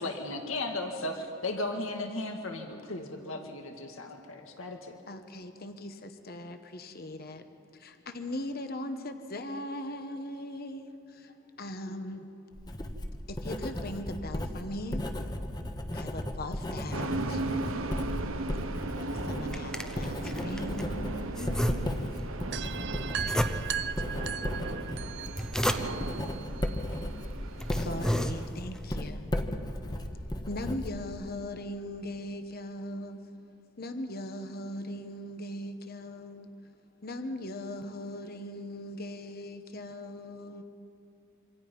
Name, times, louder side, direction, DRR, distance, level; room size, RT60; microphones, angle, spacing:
voice 1, 0.0-4.9, left 2 dB, 80° left, 2.1 m, -36 dB
voice 2, 5.1-7.5 7.7-12.3 13.3-15.2 15.9-17.9 18.5-18.7 19.1-21.9 22.2-22.4 27.8-33.2 33.8-36.5 37.0-40.6, left 1 dB, 50° left, 1.2 m, -40 dB
Writing, 12.5-31.4, left 1 dB, 20° left, 1.4 m, -36 dB
sound 1, 16.9-28.5, right 2 dB, 85° right, 1.3 m, -37 dB
sound 2, 19.4-20.9 21.3-22.3 23.1-24.0 25.1-26.2 26.9-27.0 27.5-28.8, equal, 5° left, 0.8 m, -33 dB
voice 3, 22.5-27.3, right 8 dB, 55° right, 0.6 m, -38 dB
27.0 x 25.5 x 5.5 m
head